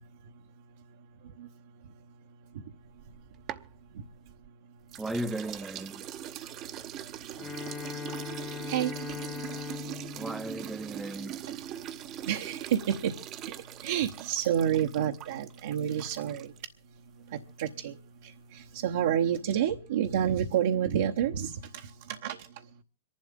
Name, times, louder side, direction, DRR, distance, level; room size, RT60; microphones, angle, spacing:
sound 1, 2.9-4.5 4.9-16.7, right 12 dB, 35° right, 0.8 m, -42 dB
voice 1, 5.0-6.0 10.2-11.4, right 1 dB, 5° right, 0.7 m, -36 dB
Bowed string instrument, 7.3-11.6, left 9 dB, 25° left, 0.8 m, -41 dB
voice 2, 12.3-13.1 13.4-13.5 13.8-16.5 17.3-17.9 18.2-22.4, right 9 dB, 70° right, 1.0 m, -29 dB
26.0 x 11.5 x 3.7 m
hypercardioid pair, 115°, 0 cm